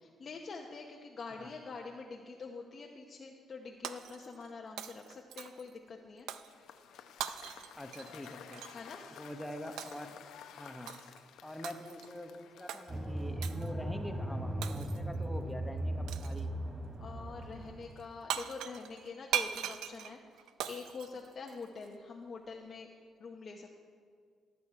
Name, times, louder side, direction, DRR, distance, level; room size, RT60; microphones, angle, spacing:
voice 1, 0.0-6.3 8.7-9.0 17.0-22.9 23.2-23.8, left 4 dB, 45° left, 0 dB, 0.9 m, -45 dB
Shatter, 3.8-4.5 4.8-5.7 6.3-6.5 7.2-8.8 9.8-10.1 10.9-11.2 11.6-12.1 12.7-12.9 13.4-13.7 14.6-15.2 16.1-16.4 18.0-18.1 18.3-21.9, right 10 dB, 85° right, 0.5 m, -40 dB
Cheering / Applause / Crowd, 6.4-13.5, left 8 dB, 80° left, 0.7 m, -53 dB
voice 2, 7.8-8.6 9.1-10.2 10.6-10.9 11.4-16.6, left 1 dB, 5° left, 6 dB, 0.8 m, -45 dB
sound 1, 12.9-17.9, right 1 dB, 20° right, 0.9 m, -37 dB
16.0 x 7.3 x 4.8 m, 2.1 s
cardioid pair, 90°, 0 cm